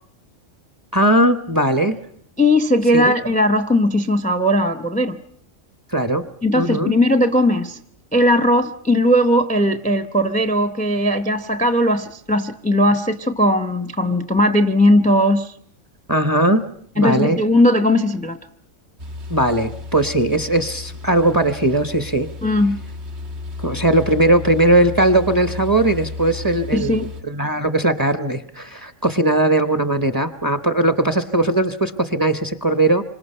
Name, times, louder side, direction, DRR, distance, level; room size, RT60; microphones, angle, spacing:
voice 1, 0.9-2.0 2.9-3.1 5.9-6.2 6.5-6.9 16.1-16.6 17.0-17.4 19.3-22.3 23.6-33.0, right 1 dB, 20° right, 0.9 m, -18 dB
voice 2, 2.4-5.2 6.4-7.8 8.1-15.5 17.0-18.4 22.4-22.8 26.7-27.1, left 1 dB, 5° left, 0.7 m, -18 dB
sound 1, 19.0-27.2, left 3 dB, 55° right, 1.6 m, -33 dB
27.5 x 25.5 x 5.6 m
omnidirectional pair, 1.4 m